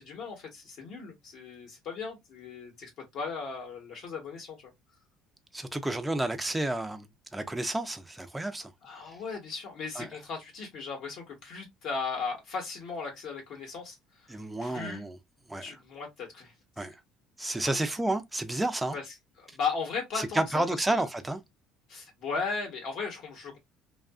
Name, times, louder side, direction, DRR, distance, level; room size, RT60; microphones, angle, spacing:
voice 1, 0.0-4.7 8.8-14.0 14.3-15.0 15.6-16.9 18.9-20.6 20.9-21.0 21.9-23.6, left 5 dB, 60° left, 0.9 m, -37 dB
voice 2, 5.5-7.1 7.3-8.7 10.0-10.1 14.3-15.2 15.5-15.8 16.8-17.0 17.4-19.0 20.2-21.4, right 1 dB, 5° right, 0.3 m, -31 dB
2.6 x 2.4 x 2.3 m
cardioid pair, 140°, 0 cm